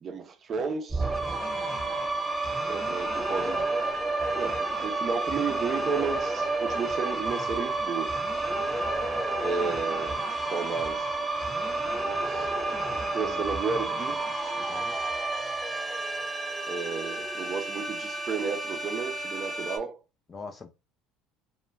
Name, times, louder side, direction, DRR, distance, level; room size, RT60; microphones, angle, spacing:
voice 1, 0.0-1.1 2.7-3.7 4.3-8.2 9.4-11.1 12.3-12.5 13.1-14.2 16.6-20.0, right 5 dB, 40° right, 0.5 m, -33 dB
sound 1, 0.9-19.8, right 2 dB, 10° right, 1.0 m, -30 dB
voice 2, 14.4-15.0 20.3-20.7, left 4 dB, 30° left, 0.4 m, -43 dB
2.2 x 2.2 x 3.2 m
supercardioid pair, 95°, 0 cm